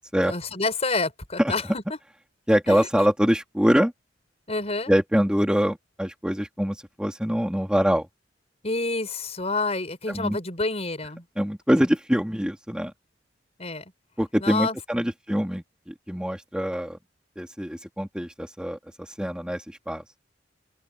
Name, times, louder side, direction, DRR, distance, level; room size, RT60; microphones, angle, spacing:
voice 1, 0.2-1.8 2.7-2.8 4.5-4.9 8.6-11.2 13.6-13.9 14.4-14.8, left 3 dB, 35° left, 6.8 m, -28 dB
voice 2, 2.5-3.9 4.9-8.1 10.1-10.4 11.4-12.9 14.2-17.0 17.4-20.0, equal, 5° right, 2.6 m, -24 dB
open air
head